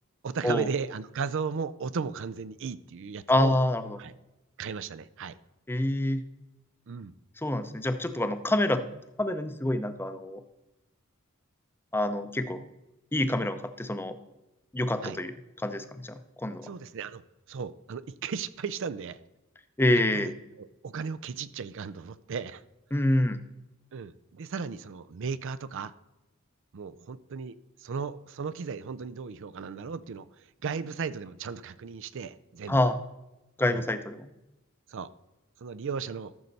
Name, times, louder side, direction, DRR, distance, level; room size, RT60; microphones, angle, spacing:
voice 1, 0.2-3.6 4.0-4.1 4.6-5.3 6.9-7.1 15.0-15.2 16.6-17.2 17.5-19.2 20.1-22.6 23.9-25.9 26.7-30.3 30.6-32.8 33.7-33.8 34.9-35.1 35.6-36.3, right 5 dB, 60° right, 14 dB, 0.4 m, -35 dB
voice 2, 3.3-3.8 5.7-6.2 7.4-8.8 9.2-10.4 11.9-12.6 13.1-14.2 14.7-15.3 15.6-16.7 19.8-20.3 22.9-23.4 32.7-33.0 33.6-34.3, left 1 dB, 10° left, 9 dB, 0.6 m, -26 dB
13.5 x 6.4 x 4.1 m, 0.99 s
head